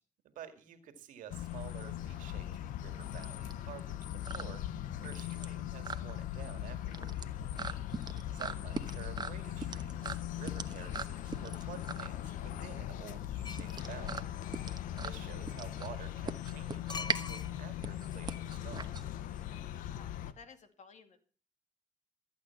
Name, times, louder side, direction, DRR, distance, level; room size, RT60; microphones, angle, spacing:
voice 1, 0.2-4.6 5.0-7.1 8.3-14.3 15.0-18.9, right 9 dB, 85° right, 8 dB, 2.0 m, -50 dB
sound 1, 1.3-20.3, left 12 dB, 90° left, 0.8 m, -40 dB
sound 2, 1.8-19.6, right 4 dB, 30° right, 1.1 m, -42 dB
sound 3, 13.4-13.8 16.9-17.8 18.1-18.2, left 5 dB, 35° left, 0.5 m, -42 dB
voice 2, 19.9-21.2, left 5 dB, 65° left, 7 dB, 2.5 m, -56 dB
14.5 x 8.5 x 5.8 m, 0.40 s
supercardioid pair, 65°, 13 cm